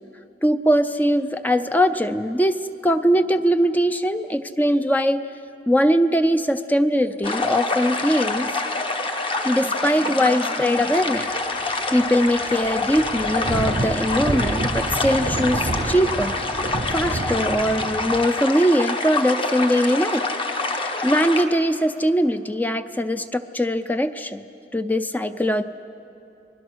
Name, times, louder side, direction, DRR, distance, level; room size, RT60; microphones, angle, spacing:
voice 1, 0.4-2.6 2.8-5.2 5.7-8.5 9.4-11.3 11.6-16.3 16.9-20.3 20.7-24.4 24.7-25.6, equal, 10° left, 9 dB, 0.5 m, -21 dB
sound 1, 7.2-21.4, left 3 dB, 30° left, 1.2 m, -26 dB
sound 2, 11.6-11.7 12.0-18.3, right 2 dB, 40° right, 0.6 m, -29 dB
29.5 x 20.5 x 6.3 m, 2.7 s
head